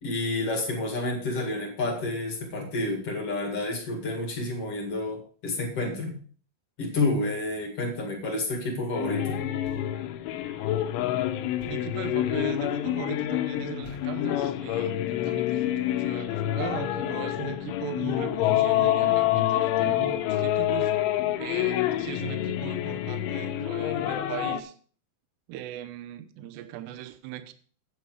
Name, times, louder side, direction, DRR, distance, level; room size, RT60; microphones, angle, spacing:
voice 1, 0.0-6.2 6.8-9.4, left 2 dB, 55° left, 1.7 m, -29 dB
sound 1, 8.9-24.6, left 13 dB, 80° left, 2.9 m, -27 dB
Thump thud, 9.6-10.2 11.6-12.0 13.8-14.5, right 2 dB, 65° right, 5.4 m, -49 dB
voice 2, 11.6-20.9 21.4-24.7 25.5-27.5, right 10 dB, 80° right, 2.5 m, -39 dB
10.0 x 8.6 x 4.8 m
omnidirectional pair, 5.9 m